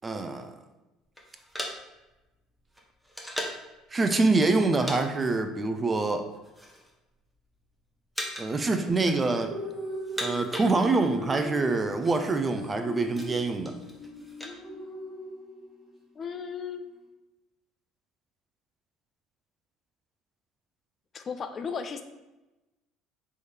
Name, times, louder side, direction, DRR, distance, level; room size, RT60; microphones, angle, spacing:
voice 1, 0.0-0.5 3.9-6.3 8.4-9.5 10.2-13.7, right 3 dB, 25° right, 7 dB, 0.5 m, -25 dB
sound 1, 1.2-3.7 4.4-5.0 5.3-5.5 6.2-6.9 7.2-7.7 8.1-8.6 8.9-9.6 9.9-11.2 11.5-11.6 11.8-12.1 12.6-14.6, equal, ahead, 0.8 m, -38 dB
sound 2, 8.9-15.9, left 1 dB, 20° left, 1.3 m, -40 dB
voice 2, 16.2-16.8 21.1-22.0, left 6 dB, 40° left, 9 dB, 0.4 m, -35 dB
3.5 x 3.2 x 4.2 m, 1.0 s
hypercardioid pair, 65°, 0 cm